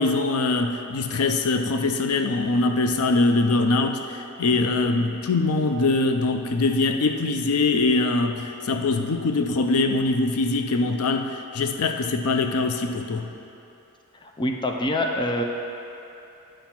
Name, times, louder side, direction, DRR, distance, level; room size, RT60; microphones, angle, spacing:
voice 1, 0.0-13.3, left 3 dB, 75° left, 6 dB, 0.5 m, -23 dB
voice 2, 14.2-15.4, left 1 dB, 20° left, 2 dB, 0.5 m, -25 dB
8.9 x 5.1 x 5.9 m, 2.9 s
head